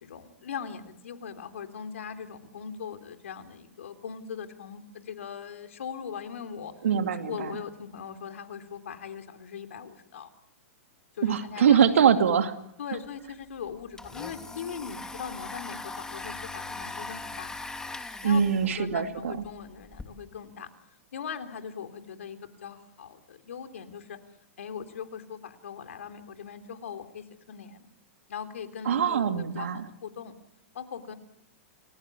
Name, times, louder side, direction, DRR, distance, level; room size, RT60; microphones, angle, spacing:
voice 1, 0.0-6.7 7.3-10.3 11.1-11.9 12.2-12.3 12.8-17.6 18.2-20.7 21.1-24.2 24.6-27.9 28.3-29.7 30.0-30.3 30.7-31.1, left 7 dB, 75° left, 7 dB, 3.4 m, -40 dB
voice 2, 6.8-7.6 11.2-12.5 18.2-19.4 28.8-29.9, right 7 dB, 75° right, 7 dB, 2.5 m, -23 dB
Domestic sounds home sounds, 13.0-13.1 13.4-20.0, left 3 dB, 10° left, 2.9 m, -40 dB
29.5 x 21.0 x 8.4 m, 0.79 s
hypercardioid pair, 115°, 7 cm